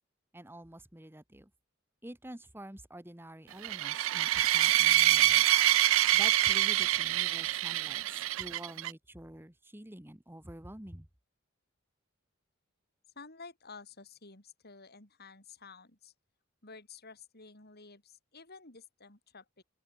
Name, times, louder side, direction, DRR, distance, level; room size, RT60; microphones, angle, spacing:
voice 1, 0.3-1.5 2.0-5.4 6.1-11.1, right 1 dB, 10° right, 1.6 m, -48 dB
sound 1, 3.6-8.9, right 15 dB, 75° right, 0.4 m, -26 dB
voice 2, 13.2-16.1 16.6-19.6, left 4 dB, 50° left, 5.4 m, -52 dB
open air
head